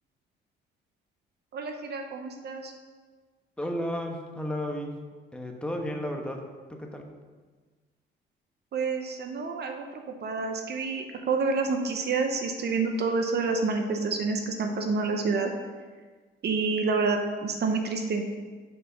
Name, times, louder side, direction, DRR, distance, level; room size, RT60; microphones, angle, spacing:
voice 1, 1.5-2.7 8.7-15.5 16.4-18.2, right 4 dB, 55° right, 4 dB, 0.9 m, -28 dB
voice 2, 3.6-4.9 5.3-6.4 6.8-7.0, equal, 5° left, 2 dB, 1.1 m, -33 dB
6.1 x 5.5 x 5.7 m, 1.4 s
cardioid pair, 90°, 20 cm